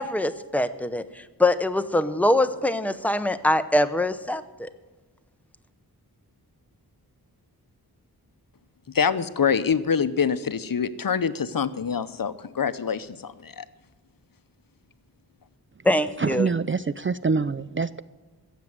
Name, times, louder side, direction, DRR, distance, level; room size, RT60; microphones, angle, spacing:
voice 1, 0.0-4.7 15.8-16.5, left 1 dB, 5° left, 10 dB, 0.7 m, -23 dB
voice 2, 8.9-13.6, left 6 dB, 60° left, 14 dB, 0.8 m, -25 dB
voice 3, 16.2-18.0, right 4 dB, 35° right, 16 dB, 0.4 m, -25 dB
16.0 x 7.6 x 9.3 m, 1.2 s
wide cardioid pair, 65°, 39 cm